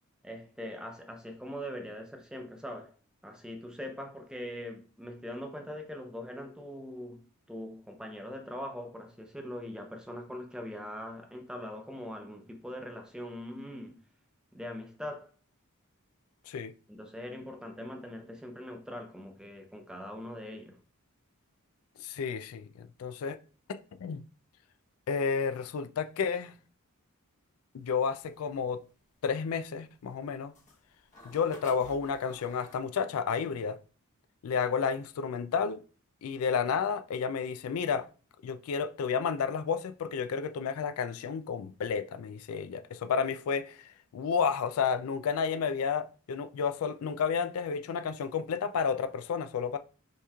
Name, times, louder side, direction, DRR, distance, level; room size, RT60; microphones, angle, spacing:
voice 1, 0.2-3.0 3.2-14.0 14.5-15.3 16.9-20.8, left 1 dB, 5° right, 0.5 m, -42 dB
voice 2, 22.0-23.4 23.7-24.2 25.1-26.5 27.7-28.8 29.2-30.5 31.2-33.8 34.4-35.8 36.2-38.1 38.4-49.8, left 6 dB, 75° left, 0.3 m, -31 dB
sound 1, 27.8-32.8, left 2 dB, 35° left, 0.9 m, -52 dB
5.5 x 3.0 x 2.3 m
head